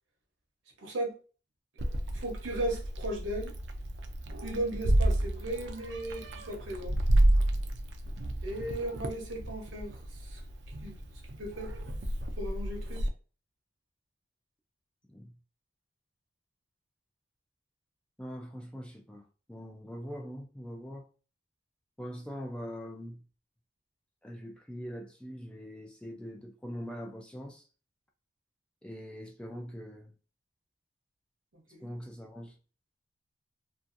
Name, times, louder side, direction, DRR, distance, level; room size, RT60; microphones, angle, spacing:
voice 1, 0.8-1.1 2.1-3.5 4.4-7.0 8.4-10.4 10.8-11.0 11.4-11.8 12.4-13.0 31.5-31.9, right 1 dB, 85° right, 0.9 m, -36 dB
Meow, 1.8-13.1, right 1 dB, 65° right, 0.4 m, -31 dB
voice 2, 18.2-19.2 19.5-21.1 22.0-23.2 24.2-27.7 28.8-30.1 31.8-32.6, equal, 5° left, 0.3 m, -42 dB
2.6 x 2.4 x 2.5 m
head